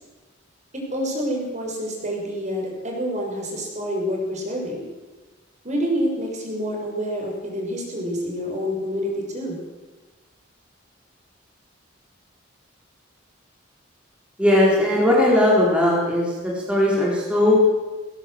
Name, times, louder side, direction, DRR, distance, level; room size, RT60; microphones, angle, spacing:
voice 1, 0.7-4.9 5.6-9.6, equal, 35° right, 0 dB, 6.3 m, -27 dB
voice 2, 14.4-17.6, left 1 dB, 5° right, -5 dB, 4.5 m, -18 dB
19.5 x 19.0 x 7.9 m, 1.2 s
head